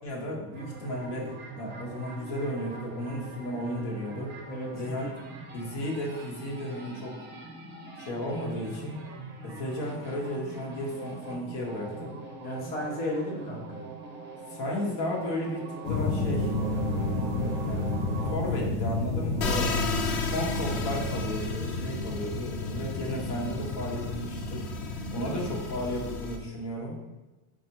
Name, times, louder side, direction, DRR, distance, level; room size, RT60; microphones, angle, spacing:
voice 1, 0.0-4.3 4.7-5.1 5.5-7.2 8.0-9.0 9.4-12.2 14.5-16.5 17.1-17.8 18.3-19.8 20.3-24.7 25.1-27.0, left 1 dB, 85° left, -3 dB, 1.3 m, -34 dB
sound 1, 0.5-18.4, right 3 dB, 25° right, 0.4 m, -42 dB
voice 2, 4.5-5.1 12.4-13.8 19.4-19.7 25.1-25.3, left 1 dB, 20° left, -4 dB, 0.9 m, -34 dB
sound 2, 15.8-26.1, left 2 dB, 70° left, 0.9 m, -31 dB
sound 3, 19.4-26.4, left 5 dB, 40° left, 0.4 m, -36 dB
4.7 x 2.5 x 2.9 m, 1.1 s
cardioid pair, 140°, 48 cm